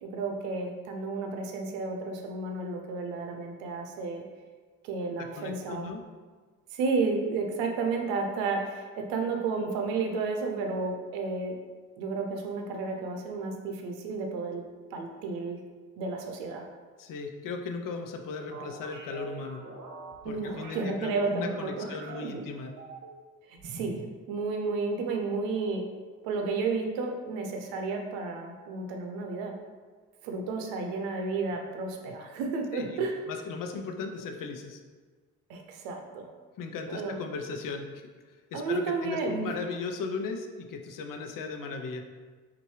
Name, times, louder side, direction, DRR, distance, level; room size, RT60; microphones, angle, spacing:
voice 1, 0.0-4.2 4.8-5.9 6.7-11.6 12.0-14.6 14.9-15.6 16.0-16.6 20.2-21.9 22.2-22.4 23.5-24.0 24.3-25.9 26.2-29.6 30.2-33.2 35.5-36.3 36.9-37.2 38.5-39.5, right 4 dB, 90° right, 3 dB, 0.6 m, -32 dB
voice 2, 5.4-6.0 17.0-19.6 20.2-22.7 32.7-34.8 36.6-42.0, left 4 dB, 65° left, 4 dB, 0.7 m, -37 dB
sound 1, 18.5-20.9 21.4-23.2 23.6-24.1, right 4 dB, 55° right, 1.0 m, -44 dB
5.3 x 2.6 x 3.1 m, 1.4 s
supercardioid pair, 55°, 35 cm